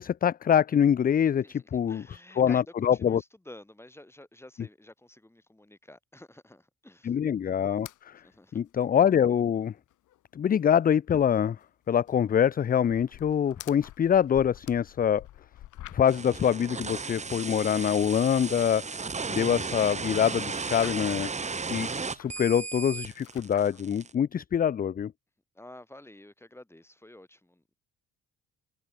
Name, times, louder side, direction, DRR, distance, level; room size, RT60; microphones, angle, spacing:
voice 1, 0.0-3.2 7.0-8.2 8.5-9.7 10.3-11.6 11.9-15.2 15.9-18.8 19.3-21.3 21.7-25.1, left 8 dB, 30° left, 0.4 m, -25 dB
voice 2, 1.4-7.2 8.2-8.6 25.5-27.7, left 1 dB, 10° left, 6.7 m, -50 dB
sound 1, 7.7-8.0 8.3-8.4 8.7-8.8 9.2-9.3 9.6-10.2 10.5-16.3 16.8-18.2 18.7-20.0 20.3-21.3 21.8-22.8 23.1-23.8, left 14 dB, 80° left, 3.2 m, -49 dB
sound 2, 16.1-24.1, right 4 dB, 25° right, 1.1 m, -35 dB
cardioid pair, 90°, 30 cm